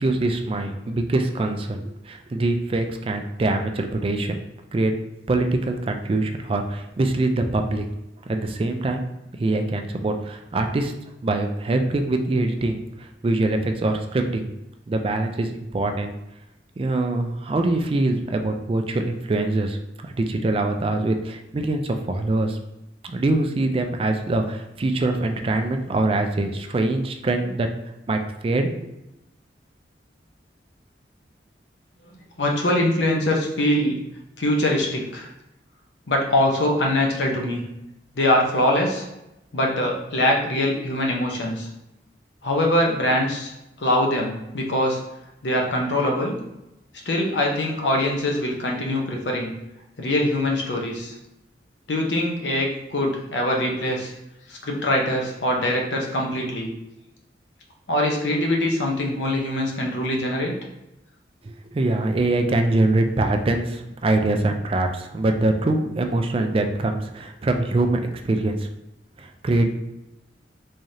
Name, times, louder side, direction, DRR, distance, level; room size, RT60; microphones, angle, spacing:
voice 1, 0.0-4.4 4.7-4.9 5.3-7.8 8.3-9.0 9.4-10.9 11.2-14.5 14.9-16.1 16.8-19.8 20.0-22.6 23.0-27.7 28.1-28.7 61.4-68.7 69.2-69.7, right 2 dB, 30° right, 5 dB, 0.3 m, -23 dB
voice 2, 32.4-34.0 34.4-35.3 36.1-37.6 38.2-39.0 39.5-41.7 42.4-43.5 43.8-45.0 45.4-46.4 47.1-49.5 50.0-51.1 51.9-54.1 54.5-56.7 57.9-60.5, left 1 dB, 85° left, 0 dB, 0.8 m, -23 dB
3.6 x 3.2 x 2.7 m, 0.92 s
head